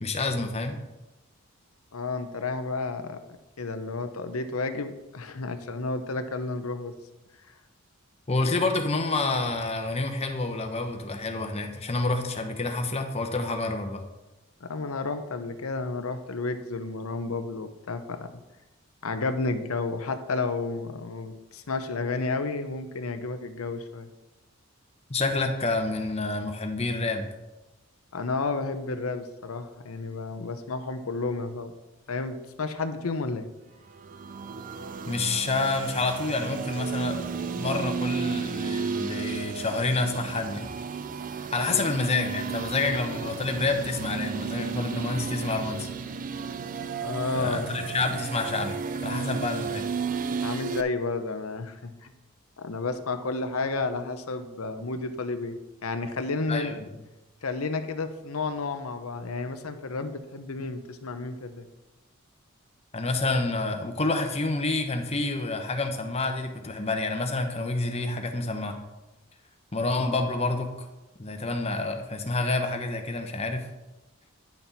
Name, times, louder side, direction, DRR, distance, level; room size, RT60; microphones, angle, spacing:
voice 1, 0.0-0.8 8.3-14.0 25.1-27.3 35.0-40.7 41.4-45.9 47.3-49.8 56.5-56.9 62.9-68.8 69.7-70.9 71.2-73.6, left 3 dB, 30° left, 4 dB, 0.9 m, -28 dB
voice 2, 1.9-3.2 3.6-6.9 14.6-18.4 19.0-24.1 28.1-31.7 32.1-33.5 41.7-41.9 47.0-48.2 49.1-49.2 50.4-52.1 52.6-56.8 57.4-61.7, left 3 dB, 90° left, 9 dB, 0.8 m, -31 dB
sound 1, 33.9-50.8, right 5 dB, 40° right, 0.4 m, -33 dB
10.5 x 6.0 x 4.1 m, 1.0 s
head